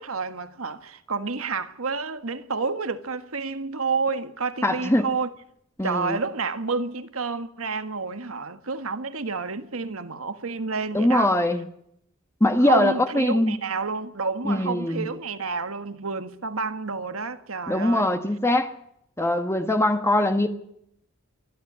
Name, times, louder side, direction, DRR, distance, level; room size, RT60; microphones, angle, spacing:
voice 1, 0.0-5.3 5.8-11.3 12.6-18.1, right 4 dB, 85° right, 1.6 m, -29 dB
voice 2, 4.6-5.1 5.8-6.2 10.9-11.7 12.4-13.6 14.4-15.1 17.7-18.7 19.2-20.5, left 1 dB, 15° left, 1.2 m, -22 dB
24.5 x 12.5 x 8.9 m
head